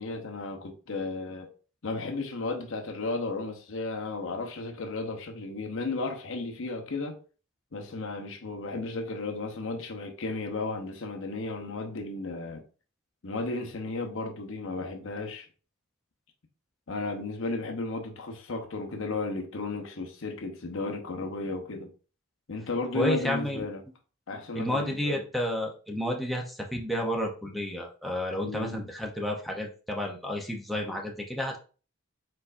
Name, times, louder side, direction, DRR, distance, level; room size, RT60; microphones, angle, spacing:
voice 1, 0.0-1.5 1.8-7.2 7.7-12.6 13.2-15.5 16.9-21.9 22.5-23.8 24.3-25.2 28.4-28.9, left 3 dB, 65° left, 0.8 m, -34 dB
voice 2, 22.9-23.6 24.5-31.6, equal, ahead, 0.7 m, -31 dB
4.5 x 4.1 x 2.5 m
head